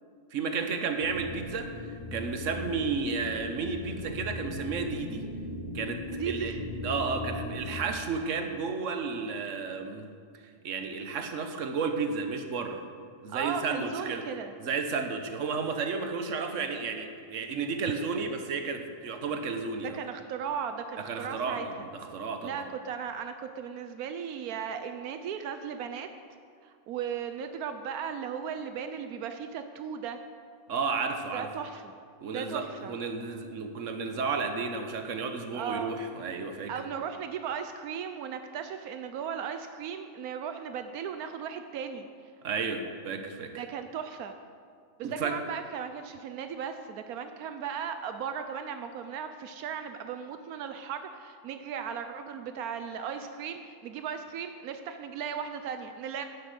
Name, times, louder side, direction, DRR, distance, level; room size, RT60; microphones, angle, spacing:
voice 1, 0.3-5.3 5.7-6.5 6.8-10.1 10.4-12.8 13.2-14.2 14.6-20.0 21.0-22.6 30.7-31.5 32.2-36.7 42.4-43.5 45.0-45.4, right 4 dB, 60° right, 6 dB, 1.4 m, -32 dB
sound 1, 1.0-7.8, left 2 dB, 35° left, 1.1 m, -38 dB
voice 2, 6.1-6.6 13.3-14.5 19.9-21.7 22.4-26.1 26.6-30.2 31.3-31.9 32.3-33.0 35.5-36.0 36.7-42.0 43.6-44.3 45.0-56.2, right 7 dB, 85° right, 8 dB, 1.2 m, -36 dB
11.5 x 7.8 x 8.1 m, 2.2 s
omnidirectional pair, 1.5 m